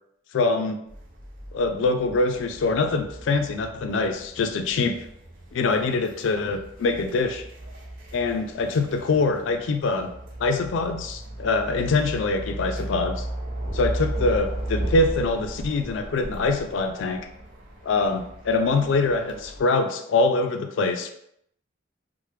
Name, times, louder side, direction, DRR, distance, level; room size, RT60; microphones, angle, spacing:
voice 1, 0.3-0.8 1.5-5.1 5.5-7.5 8.1-10.1 10.4-13.3 13.7-17.3 17.8-21.1, left 3 dB, 75° left, 6 dB, 0.3 m, -24 dB
sound 1, 0.9-19.6, right 1 dB, 45° right, 0.6 m, -36 dB
3.1 x 2.0 x 3.1 m, 0.74 s
head